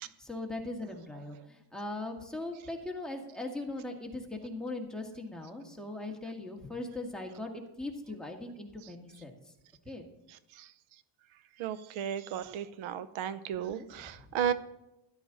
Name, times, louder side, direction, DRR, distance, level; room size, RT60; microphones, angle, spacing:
voice 1, 0.0-9.4 9.9-10.0 13.6-13.9, left 2 dB, ahead, 0 dB, 1.8 m, -40 dB
voice 2, 11.6-14.5, right 9 dB, 85° right, 14 dB, 0.8 m, -34 dB
13.0 x 11.5 x 4.0 m, 0.87 s
cardioid pair, 125°, 46 cm